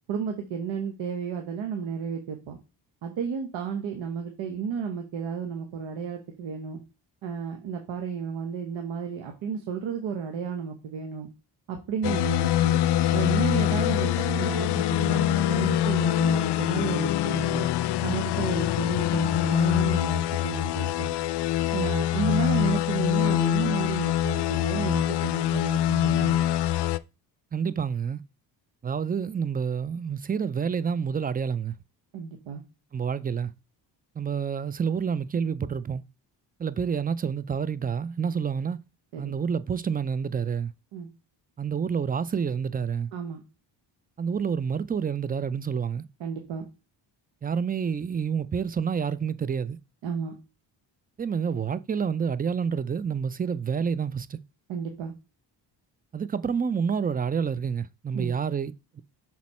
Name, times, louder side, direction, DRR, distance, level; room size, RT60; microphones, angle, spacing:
voice 1, 0.1-2.6 3.0-6.8 7.2-11.3 11.7-12.8 13.1-17.7 18.0-21.1 21.7-26.4 32.1-32.6 39.1-39.4 40.9-41.1 43.1-43.4 46.2-46.7 50.0-50.3 54.7-55.1 58.1-58.3, right 6 dB, 80° right, 1.1 m, -32 dB
sound 1, 12.0-27.0, left 12 dB, 60° left, 0.5 m, -24 dB
voice 2, 27.5-28.2 28.8-31.8 32.9-33.5 34.2-36.0 36.6-38.8 39.2-40.7 41.6-43.1 44.2-46.1 47.4-49.8 51.2-54.4 56.1-59.0, right 6 dB, 20° right, 0.4 m, -28 dB
6.2 x 4.2 x 4.2 m
cardioid pair, 75°, 45 cm